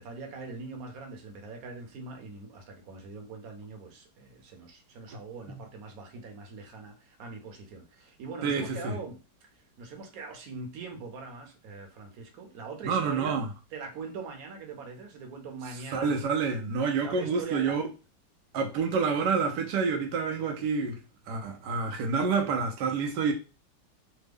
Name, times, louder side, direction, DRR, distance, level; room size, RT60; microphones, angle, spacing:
voice 1, 0.0-9.2 9.5-13.3 13.7-16.1 17.0-17.8, right 4 dB, 65° right, 1.1 m, -42 dB
voice 2, 8.4-9.0 12.8-13.5 15.9-17.9 18.5-21.0 21.3-23.3, right 5 dB, 85° right, 1.2 m, -28 dB
3.3 x 2.1 x 3.4 m
omnidirectional pair, 1.8 m